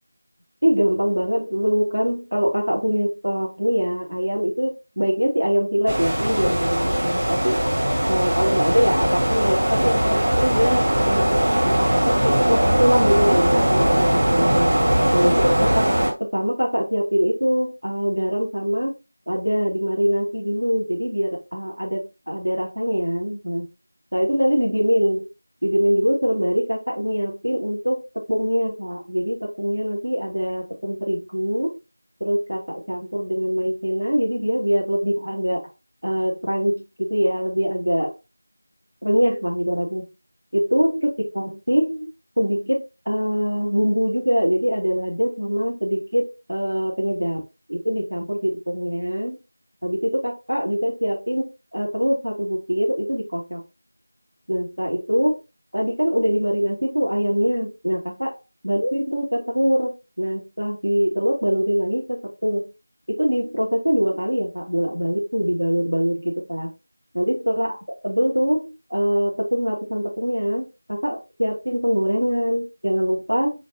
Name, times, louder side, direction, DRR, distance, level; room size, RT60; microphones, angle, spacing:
voice 1, 0.6-7.6 8.1-11.4 11.6-14.8 15.1-15.9 16.2-19.0 19.3-23.7 24.1-25.3 25.6-28.0 28.3-31.8 32.2-35.6 36.0-38.1 39.0-40.1 40.5-42.1 42.4-47.4 47.7-49.4 49.8-53.6 54.5-55.4 55.7-58.3 58.6-62.7 63.2-66.7 67.1-67.8 68.0-73.5, equal, 80° right, -1 dB, 2.3 m, -23 dB
sound 1, 5.9-16.1, right 1 dB, 50° right, 1.7 m, -20 dB
5.1 x 3.8 x 2.6 m, 0.26 s
figure-of-eight pair, 170°, 0 cm